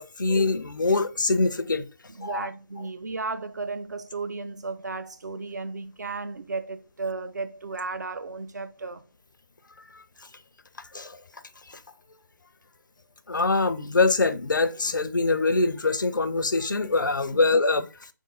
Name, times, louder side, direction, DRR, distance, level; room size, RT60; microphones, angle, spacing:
voice 1, 0.0-1.9 2.2-2.5 9.9-10.0 10.9-11.2 11.7-11.8 13.3-18.1, left 3 dB, 75° left, 0.5 m, -24 dB
voice 2, 2.1-9.0 17.3-17.5, right 3 dB, 60° right, 0.6 m, -34 dB
3.6 x 3.6 x 3.9 m
figure-of-eight pair, 150°, 11 cm